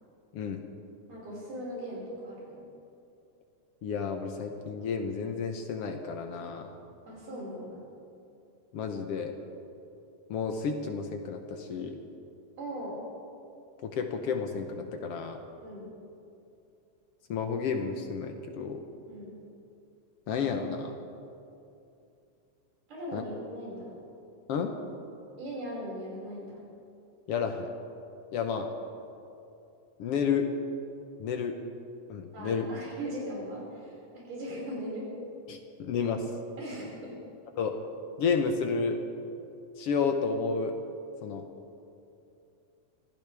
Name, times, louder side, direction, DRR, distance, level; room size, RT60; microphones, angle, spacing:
voice 1, 1.1-2.6 7.1-7.9 12.6-13.0 15.6-15.9 19.1-19.4 22.9-23.9 25.4-26.6 32.3-35.1 36.6-37.2, equal, 85° right, -5 dB, 6.9 m, -39 dB
voice 2, 3.8-6.7 8.7-9.3 10.3-12.0 13.8-15.4 17.3-18.8 20.3-20.9 23.1-23.2 24.5-24.7 27.3-27.7 28.3-28.7 30.0-30.5 31.2-31.6 32.1-32.6 35.5-36.2 37.6-37.8 38.2-39.0 39.8-40.7 41.2-41.4, left 5 dB, 65° left, 5 dB, 1.6 m, -31 dB
25.5 x 15.5 x 3.5 m, 2.6 s
omnidirectional pair, 3.6 m